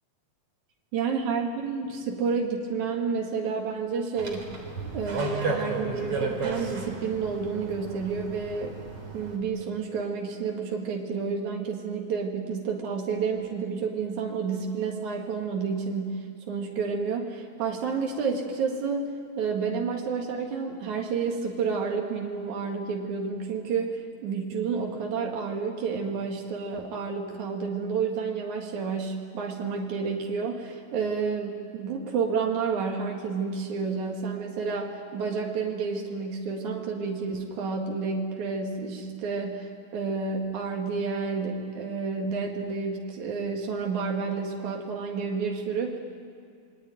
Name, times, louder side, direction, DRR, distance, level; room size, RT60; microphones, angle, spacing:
voice 1, 0.9-4.5 4.9-8.8 9.1-46.0, right 5 dB, 80° right, 1 dB, 3.4 m, -30 dB
sound 1, 4.2-9.4, right 3 dB, 50° right, 4.6 m, -33 dB
27.0 x 22.5 x 9.3 m, 2.4 s
omnidirectional pair, 3.3 m